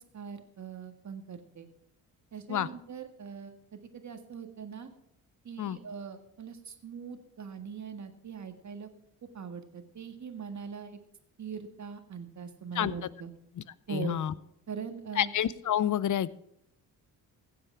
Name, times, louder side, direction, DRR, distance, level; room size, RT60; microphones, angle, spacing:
voice 1, 0.0-1.7 2.3-4.9 5.4-8.9 9.3-11.0 11.4-13.3 13.9-14.2 14.7-15.3, right 6 dB, 45° right, 7 dB, 1.8 m, -41 dB
voice 2, 13.9-14.3 15.2-16.4, left 10 dB, 50° left, 19 dB, 0.6 m, -28 dB
15.5 x 7.7 x 4.8 m, 0.76 s
supercardioid pair, 60°, 41 cm